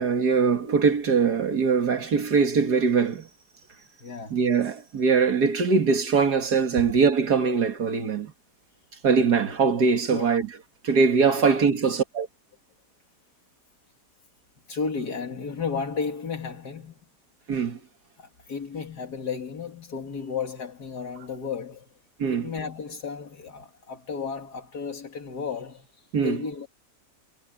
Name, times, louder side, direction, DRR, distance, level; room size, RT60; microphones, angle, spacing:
voice 1, 0.0-3.3 4.3-8.3 9.0-10.5 10.8-12.3 17.5-17.8 22.2-22.5 26.1-26.4, right 5 dB, 65° right, 2.4 m, -22 dB
voice 2, 4.0-4.4 10.1-10.5 11.4-11.6 14.7-17.0 18.2-21.9 22.3-25.9 26.2-26.7, left 5 dB, 65° left, 2.9 m, -33 dB
omnidirectional pair, 1.8 m